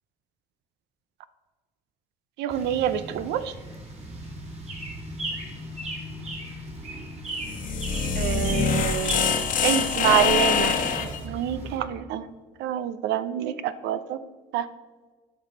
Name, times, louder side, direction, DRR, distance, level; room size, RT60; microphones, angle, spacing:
voice 1, 2.4-3.5 8.1-9.4 9.6-10.7 11.2-12.3 12.6-14.2 14.5-14.7, right 10 dB, 85° right, 14 dB, 0.5 m, -26 dB
sound 1, 2.5-11.8, right 1 dB, 40° right, 2.6 m, -37 dB
sound 2, 7.3-11.2, left 6 dB, 50° left, 1.1 m, -24 dB
12.0 x 5.5 x 3.9 m, 1.3 s
cardioid pair, 110°, 17 cm